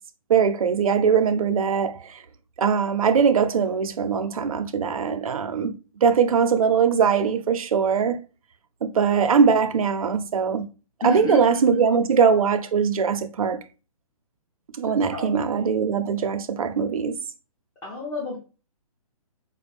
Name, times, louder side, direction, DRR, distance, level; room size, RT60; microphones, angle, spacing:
voice 1, 0.3-2.2 2.6-5.7 6.0-8.2 8.8-10.6 11.0-13.6 14.8-17.2, right 6 dB, 75° right, 0.7 m, -21 dB
voice 2, 11.0-11.8 15.1-15.7 17.8-18.4, left 2 dB, 15° left, 1.0 m, -30 dB
5.1 x 2.3 x 3.3 m
hypercardioid pair, 160°, 19 cm